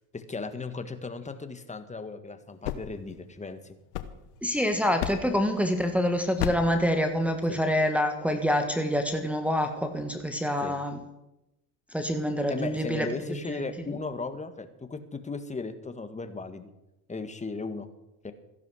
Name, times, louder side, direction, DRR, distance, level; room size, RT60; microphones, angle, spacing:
voice 1, 0.1-3.8 7.5-7.6 10.6-10.8 12.5-16.7 17.1-17.9 18.2-18.3, left 3 dB, 15° left, 9 dB, 1.7 m, -36 dB
sound 1, 2.4-4.6 5.0-5.5 6.4-6.8, left 12 dB, 80° left, 1.3 m, -35 dB
voice 2, 4.4-11.0 11.9-13.6, equal, 5° right, 4 dB, 1.6 m, -26 dB
14.5 x 11.0 x 6.4 m, 0.93 s
supercardioid pair, 90°, 46 cm